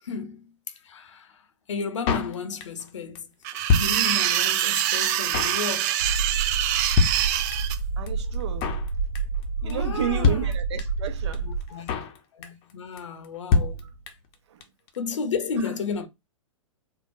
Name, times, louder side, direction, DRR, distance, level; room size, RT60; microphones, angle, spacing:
voice 1, 0.0-3.3 3.7-6.0 9.6-10.5 11.4-11.9 12.3-13.8 15.0-16.1, left 5 dB, 65° left, 0.7 m, -33 dB
Drum kit, 2.1-2.9 3.2-3.3 3.4-4.5 4.8-4.9 5.1-5.6 5.9-6.2 6.4-6.5 6.7-6.8 7.0-7.8 8.1-8.2 8.3-8.9 9.2-9.4 9.7-9.8 10.0-10.1 10.2-11.1 11.3-11.4 11.6-12.2 12.4-12.7 13.0-13.1 13.2-13.3 13.5-14.3 14.6-14.7 14.9-15.0, left 4 dB, 30° left, 0.6 m, -25 dB
sound 1, 3.4-7.8, right 12 dB, 35° right, 0.4 m, -25 dB
sound 2, 6.0-11.7, right 4 dB, 90° right, 0.5 m, -29 dB
voice 2, 8.0-8.7 9.6-11.9 13.8-13.9 14.5-14.6 15.6-15.7, right 10 dB, 55° right, 0.9 m, -33 dB
3.7 x 2.3 x 2.6 m
figure-of-eight pair, 105°, 17 cm